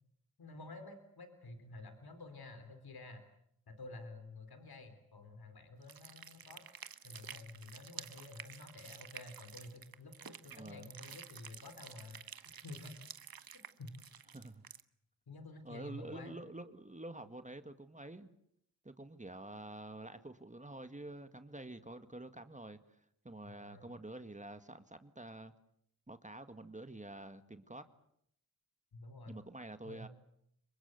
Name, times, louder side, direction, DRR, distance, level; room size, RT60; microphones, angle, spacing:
voice 1, 0.4-3.2 3.7-6.6 7.0-13.0 13.4-13.9 15.3-16.4 23.4-23.9 28.9-29.4 29.8-30.1, left 2 dB, 90° left, 8 dB, 3.7 m, -51 dB
sound 1, 5.8-14.8, right 7 dB, 70° right, 1.2 m, -51 dB
voice 2, 10.5-10.9 14.3-14.6 15.6-18.3 18.8-25.5 26.1-27.9 29.3-30.1, right 2 dB, 20° right, 9 dB, 1.8 m, -48 dB
27.0 x 23.0 x 8.0 m, 0.73 s
cardioid pair, 55°, 36 cm